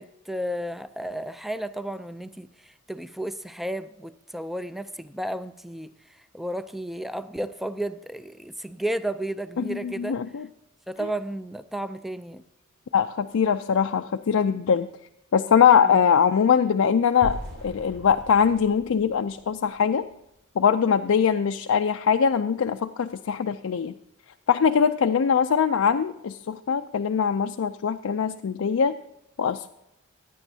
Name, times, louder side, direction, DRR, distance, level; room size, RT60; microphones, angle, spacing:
voice 1, 0.0-5.9 6.3-10.2 10.9-12.4 15.8-16.0, right 1 dB, ahead, 12 dB, 0.3 m, -33 dB
voice 2, 9.6-10.5 12.9-14.9 15.3-20.0 20.6-23.9 24.5-29.0 29.4-29.7, left 7 dB, 70° left, 7 dB, 0.4 m, -22 dB
sound 1, 17.2-20.2, equal, 60° right, 4.6 m, -40 dB
16.0 x 9.8 x 2.7 m, 0.86 s
head